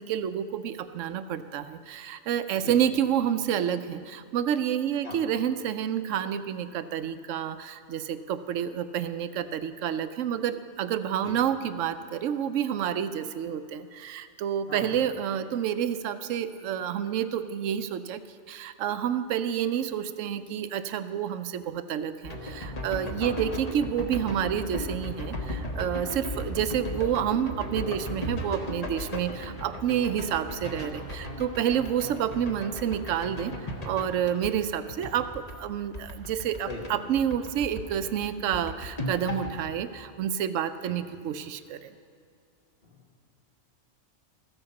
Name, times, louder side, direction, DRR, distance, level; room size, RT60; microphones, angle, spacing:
voice 1, 0.0-18.2 18.5-41.9, right 9 dB, 80° right, 12 dB, 0.9 m, -29 dB
voice 2, 14.7-15.0 23.2-23.4 26.3-26.6 32.0-32.2 36.7-37.0 40.8-41.0 42.8-43.0, left 2 dB, 50° left, -3 dB, 2.1 m, -40 dB
sound 1, 22.2-36.9 37.2-39.6, left 1 dB, 35° left, 1.0 m, -36 dB
14.5 x 7.8 x 5.8 m, 2.4 s
omnidirectional pair, 1.3 m